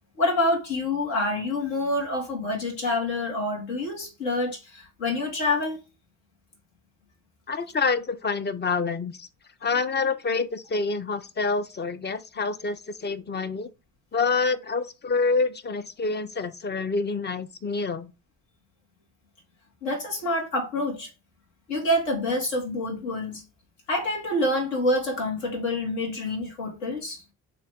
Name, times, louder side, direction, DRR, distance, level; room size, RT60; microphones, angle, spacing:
voice 1, 0.2-5.8 19.8-21.1 21.7-23.4 23.9-27.2, left 1 dB, 70° left, 1.6 m, -27 dB
voice 2, 7.5-9.3 9.6-13.7 14.1-18.1, left 4 dB, 25° left, 0.5 m, -27 dB
3.0 x 2.8 x 3.1 m
hypercardioid pair, 45°, 46 cm